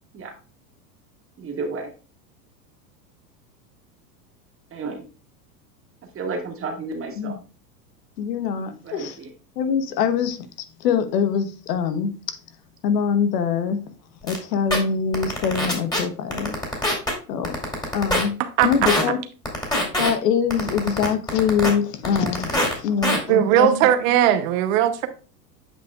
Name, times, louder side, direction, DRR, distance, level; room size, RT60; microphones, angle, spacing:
voice 1, 1.4-1.9 4.7-5.0 6.1-7.4 8.8-9.3, right 3 dB, 25° right, 1.9 m, -31 dB
voice 2, 8.2-9.2 9.6-10.5 10.8-12.4 12.8-13.8 14.2-16.6 17.3-17.5 17.9-18.3 18.6-19.2 20.0-23.8, left 7 dB, 75° left, 1.1 m, -24 dB
sound 1, 14.3-14.4 14.7-14.8 15.1-16.0 16.3-17.1 17.4-18.2 18.6-19.0 19.5-20.1 20.5-21.7 22.0-22.7 23.0-23.2, left 1 dB, 10° left, 2.6 m, -22 dB
voice 3, 18.4-18.9 23.3-25.1, right 11 dB, 55° right, 0.9 m, -19 dB
8.9 x 5.4 x 2.4 m
hypercardioid pair, 110°, 48 cm